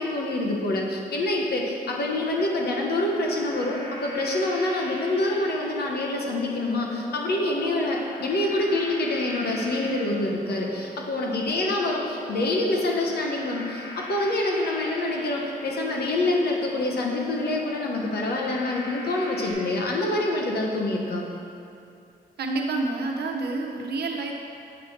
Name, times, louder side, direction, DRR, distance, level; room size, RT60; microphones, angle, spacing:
voice 1, 0.0-21.2, left 2 dB, 75° left, -1 dB, 1.1 m, -26 dB
sound 1, 2.0-19.5, left 1 dB, 15° left, 1.9 m, -42 dB
voice 2, 22.4-24.3, right 3 dB, 80° right, 1 dB, 0.9 m, -28 dB
8.2 x 7.1 x 3.3 m, 2.5 s
wide cardioid pair, 125°, 17 cm